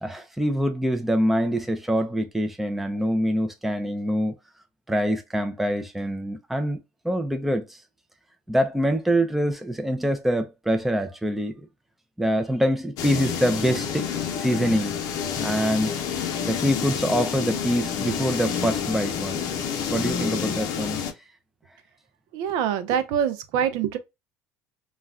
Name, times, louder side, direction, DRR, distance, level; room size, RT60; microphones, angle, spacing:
voice 1, 0.0-4.3 4.9-6.8 7.0-7.8 8.5-11.7 12.2-14.1 14.4-15.0 15.4-15.9 16.5-19.4 19.9-21.0, equal, 5° right, 0.5 m, -25 dB
sound 1, 13.0-21.1, left 7 dB, 65° left, 0.6 m, -29 dB
voice 2, 22.3-24.0, right 8 dB, 75° right, 0.5 m, -25 dB
2.3 x 2.1 x 3.5 m
cardioid pair, 115°, 7 cm